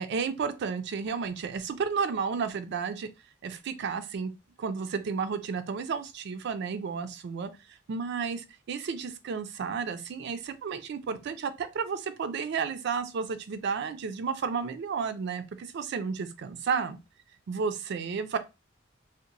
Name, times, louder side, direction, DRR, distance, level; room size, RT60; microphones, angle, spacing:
voice 1, 0.0-3.1 3.4-4.3 4.6-7.5 7.9-17.0 17.5-18.4, right 5 dB, 60° right, 0.3 m, -32 dB
2.8 x 2.0 x 2.5 m
head